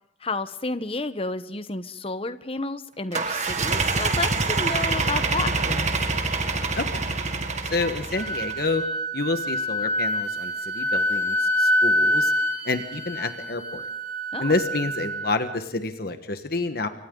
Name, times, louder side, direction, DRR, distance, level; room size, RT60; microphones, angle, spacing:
voice 1, 0.2-5.9 14.3-14.5, left 3 dB, 30° left, 12 dB, 1.0 m, -31 dB
sound 1, 3.1-8.7, right 3 dB, 40° right, 1.9 m, -26 dB
voice 2, 6.7-7.0 7.7-8.8 9.1-12.3 12.6-13.9 14.4-16.9, left 3 dB, 55° left, 8 dB, 1.4 m, -28 dB
Wind instrument woodwind instrument, 7.8-15.5, equal, 70° right, 4.8 m, -26 dB
28.5 x 24.5 x 3.9 m, 0.75 s
head